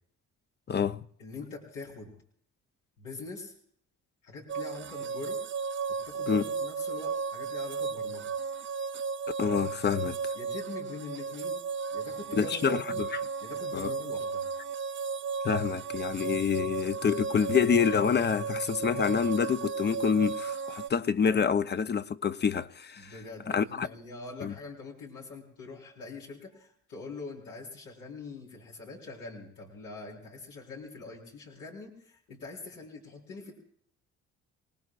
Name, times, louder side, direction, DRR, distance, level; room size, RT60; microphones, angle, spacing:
voice 1, 0.7-1.0 6.3-6.4 9.4-10.2 12.4-13.1 13.7-13.9 15.4-23.1 23.5-23.9 24.4-24.5, left 6 dB, 35° left, 0.7 m, -27 dB
voice 2, 1.2-2.1 3.0-3.5 4.2-5.4 5.9-8.3 10.3-11.6 11.9-13.0 13.4-14.5 23.0-33.5, left 3 dB, 90° left, 4.4 m, -43 dB
sound 1, 4.5-20.9, right 5 dB, 40° right, 0.5 m, -35 dB
28.0 x 18.5 x 2.5 m
cardioid pair, 90°, 30 cm